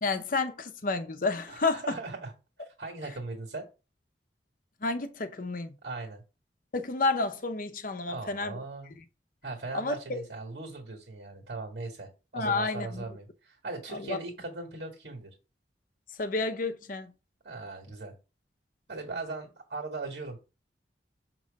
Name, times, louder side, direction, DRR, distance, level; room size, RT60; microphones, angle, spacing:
voice 1, 0.0-1.8 4.8-5.7 6.7-8.6 9.7-10.2 12.3-13.0 13.9-14.2 16.2-17.1, left 3 dB, 50° left, 0.7 m, -30 dB
voice 2, 1.5-2.3 2.8-3.7 5.8-6.2 8.1-8.9 9.4-15.3 17.4-18.1 18.9-20.4, right 3 dB, 70° right, 1.7 m, -39 dB
6.5 x 3.0 x 5.1 m
head